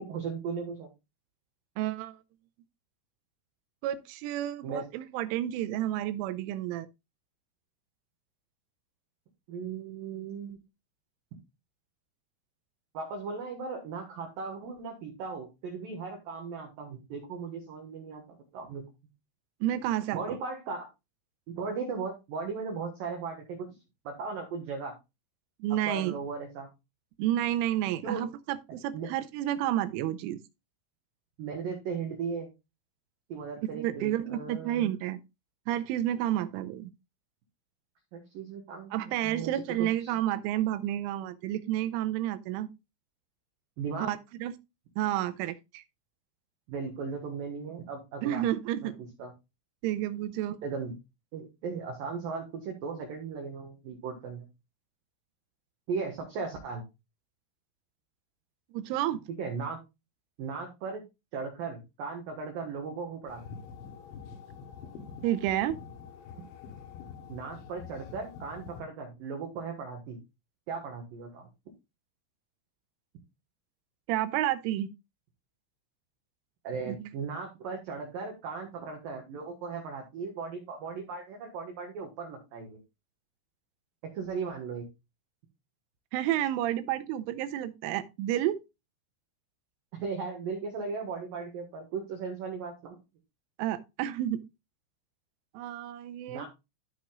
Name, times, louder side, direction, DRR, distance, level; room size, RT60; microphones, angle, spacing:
voice 1, 0.1-0.9 4.6-4.9 9.5-10.6 12.9-18.8 20.1-20.9 21.5-23.7 24.0-25.0 25.9-26.7 28.0-28.3 28.9-29.1 31.4-32.5 33.3-34.9 38.1-40.1 43.8-44.1 46.7-48.5 48.8-48.9 49.2-49.3 50.6-50.9 51.3-54.4 55.9-56.8 59.4-59.8 60.4-61.0 61.3-63.4 67.3-70.2 70.7-71.5 76.6-82.8 84.1-84.9 89.9-93.0 96.3-96.5, right 5 dB, 60° right, 2.5 m, -37 dB
voice 2, 1.8-2.2 3.8-6.9 19.6-20.4 25.6-26.2 27.2-30.4 33.6-35.2 35.7-36.9 38.9-42.7 44.1-44.5 45.0-45.8 48.2-49.0 49.8-50.6 58.7-59.2 65.2-65.8 74.1-74.9 76.9-77.1 86.1-88.6 93.6-94.4 95.5-96.5, right 12 dB, 90° right, 3.1 m, -30 dB
sound 1, 63.3-68.8, left 7 dB, 80° left, 3.5 m, -46 dB
13.5 x 6.1 x 2.3 m
omnidirectional pair, 5.6 m